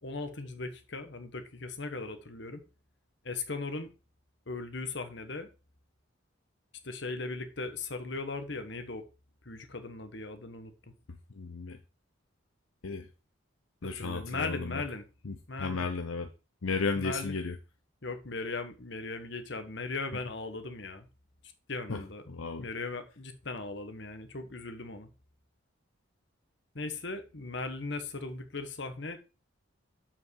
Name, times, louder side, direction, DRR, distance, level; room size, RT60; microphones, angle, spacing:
voice 1, 0.0-2.6 3.2-3.9 4.5-5.5 6.8-9.1 9.4-10.9 13.8-15.1 15.5-15.8 17.0-17.4 18.0-21.1 21.7-22.3 22.6-25.1 26.7-29.2, left 3 dB, 55° left, 1.3 m, -38 dB
voice 2, 11.4-11.8 12.8-13.1 13.8-14.8 15.3-16.3 16.6-17.5 21.9-22.0 22.3-22.7, left 4 dB, 80° left, 0.8 m, -34 dB
7.4 x 5.9 x 4.7 m
head